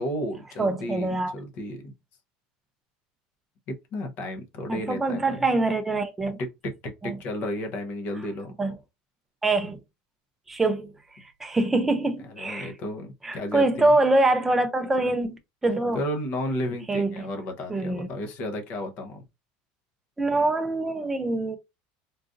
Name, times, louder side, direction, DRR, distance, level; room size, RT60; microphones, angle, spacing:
voice 1, 0.0-1.9 3.7-5.4 6.4-8.5 12.2-13.9 15.9-19.2, left 1 dB, 35° left, 0.7 m, -33 dB
voice 2, 0.6-1.3 4.7-6.4 7.0-7.1 8.6-8.7 9.4-9.8 10.5-10.9 11.4-12.7 13.2-16.0 16.9-17.2 17.7-18.1 20.2-21.6, right 2 dB, 5° right, 0.4 m, -24 dB
3.8 x 2.5 x 2.5 m
cardioid pair, 175°, 4 cm